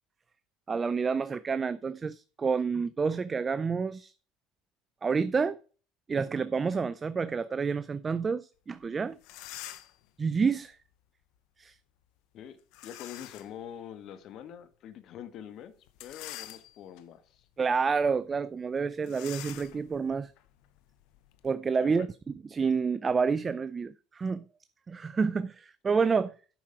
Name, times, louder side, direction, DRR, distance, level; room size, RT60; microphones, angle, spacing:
voice 1, 0.7-4.1 5.0-5.6 6.1-9.2 10.2-10.8 11.6-11.7 17.6-20.3 21.4-22.1 22.5-24.4 24.9-26.3, right 5 dB, 25° right, 0.5 m, -29 dB
sound 1, 8.8-8.9 9.2-10.1 12.7-13.6 14.1-14.2 15.9-17.0 17.6-17.8 18.0-18.2 19.0-21.5, left 14 dB, 75° left, 0.9 m, -46 dB
voice 2, 12.8-15.7 16.0-17.4 21.8-22.1, left 9 dB, 55° left, 1.4 m, -45 dB
9.2 x 6.4 x 4.8 m
supercardioid pair, 105°, 0 cm